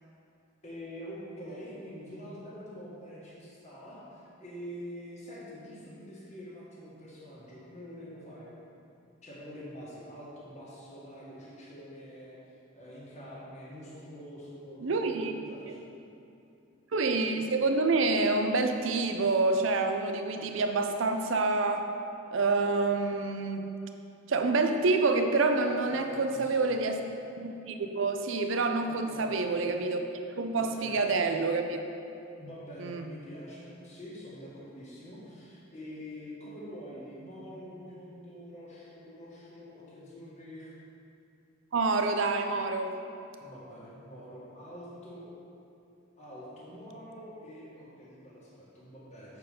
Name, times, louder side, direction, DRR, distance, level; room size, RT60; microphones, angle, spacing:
voice 1, 0.6-8.5 9.2-12.4 12.7-15.9 25.6-26.8 28.9-29.3 30.5-31.0 32.4-40.8 43.4-45.3 46.2-49.4, equal, 35° left, -7 dB, 1.6 m, -46 dB
voice 2, 14.8-15.4 15.7-15.8 16.9-21.9 22.3-23.7 24.3-27.0 27.4-30.0 30.4-31.8 32.8-33.1 41.7-43.0, right 3 dB, 70° right, 6 dB, 0.5 m, -27 dB
7.1 x 4.6 x 5.0 m, 2.6 s
head